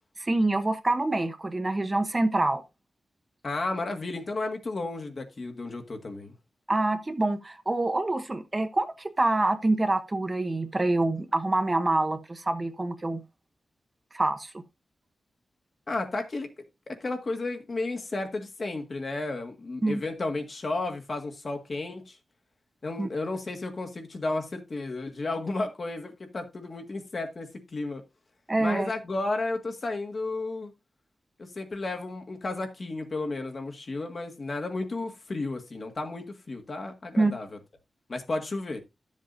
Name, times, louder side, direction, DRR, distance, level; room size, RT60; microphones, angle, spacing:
voice 1, 0.2-2.6 6.7-13.2 14.1-14.6 19.8-20.0 23.0-23.1 28.5-28.9 37.2-37.3, right 2 dB, 25° right, 1.0 m, -26 dB
voice 2, 3.4-6.3 15.9-16.5 16.9-22.2 22.8-28.0 28.6-30.7 31.4-37.6 38.1-38.8, left 2 dB, 50° left, 1.7 m, -33 dB
12.5 x 7.4 x 2.6 m
wide cardioid pair, 90°, 0 cm